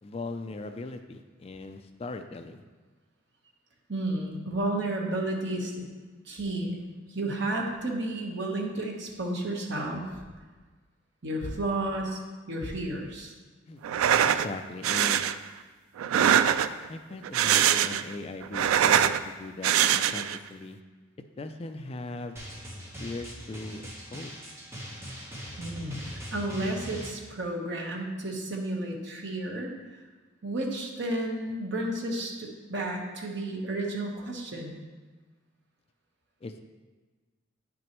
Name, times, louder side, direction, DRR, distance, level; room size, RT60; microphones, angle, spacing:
voice 1, 0.0-2.6 13.7-13.8 14.4-15.3 16.9-20.8 21.4-22.4 23.0-24.3 36.4-36.6, left 2 dB, 30° left, 7 dB, 0.3 m, -39 dB
voice 2, 3.9-5.9 6.2-6.8 7.1-10.2 11.2-12.2 12.5-13.3 25.6-29.7 30.4-34.8, right 1 dB, 60° right, 0 dB, 1.2 m, -32 dB
sound 1, 13.8-14.5 14.8-15.3 16.0-16.9 17.2-18.1 18.4-19.2 19.6-20.4, right 9 dB, 85° right, 0.3 m, -23 dB
Drum, 22.4-27.1, equal, 15° right, 1.1 m, -41 dB
9.5 x 6.1 x 3.0 m, 1.3 s
head